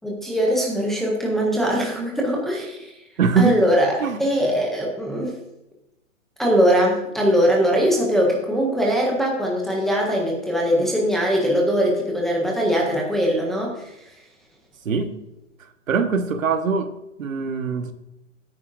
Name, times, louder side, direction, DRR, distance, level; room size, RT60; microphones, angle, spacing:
voice 1, 0.0-2.9 3.4-3.9 4.2-5.3 6.4-13.9, equal, ahead, -3 dB, 0.5 m, -21 dB
voice 2, 3.2-3.6 4.0-4.2 14.8-15.1 15.9-16.9 17.2-17.9, right 5 dB, 85° right, 7 dB, 1.4 m, -22 dB
15.5 x 9.5 x 2.6 m, 0.89 s
hypercardioid pair, 150°, 39 cm